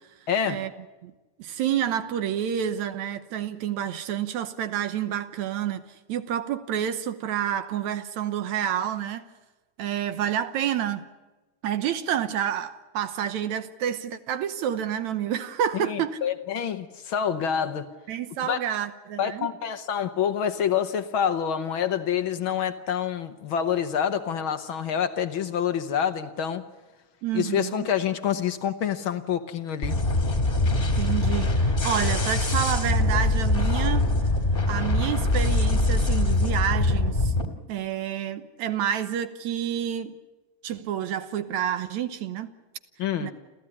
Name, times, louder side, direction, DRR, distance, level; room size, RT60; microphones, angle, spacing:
voice 1, 0.3-0.6 15.7-17.9 18.4-18.6 19.2-26.6 27.3-30.0 43.0-43.3, left 8 dB, 60° left, 1.4 m, -27 dB
voice 2, 1.4-9.3 9.8-11.1 11.6-16.2 18.1-19.5 27.2-27.9 31.0-34.1 34.7-37.3 37.7-40.2 40.6-42.5 43.2-43.3, right 10 dB, 75° right, 2.3 m, -29 dB
sound 1, 29.8-37.5, left 2 dB, 20° left, 1.8 m, -23 dB
29.0 x 14.5 x 9.8 m
omnidirectional pair, 3.4 m